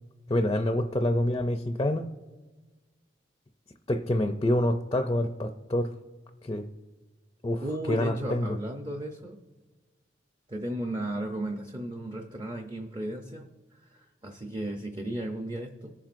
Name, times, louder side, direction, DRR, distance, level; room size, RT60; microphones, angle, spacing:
voice 1, 0.3-2.1 3.9-5.9 6.4-6.6 7.4-7.6 7.9-8.6, left 1 dB, 25° left, 0.4 m, -26 dB
voice 2, 7.6-9.4 10.5-15.9, right 1 dB, 25° right, 0.6 m, -35 dB
18.5 x 7.3 x 2.5 m
head